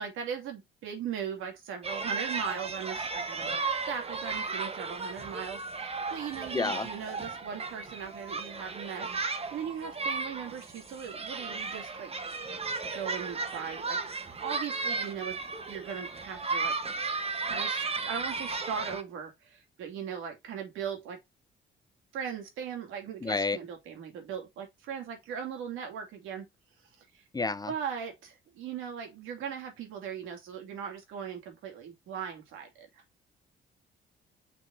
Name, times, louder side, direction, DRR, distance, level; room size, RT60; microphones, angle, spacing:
voice 1, 0.0-3.6 3.9-12.1 12.9-15.4 15.7-16.8 17.5-21.2 22.1-26.5 27.0-27.2 27.7-33.0, right 7 dB, 90° right, 2.8 m, -39 dB
sound 1, 1.8-19.0, right 4 dB, 30° right, 1.3 m, -35 dB
voice 2, 6.5-6.9 23.2-23.6 27.3-27.7, left 3 dB, 20° left, 0.6 m, -29 dB
6.0 x 5.8 x 2.8 m
cardioid pair, 90°, 20 cm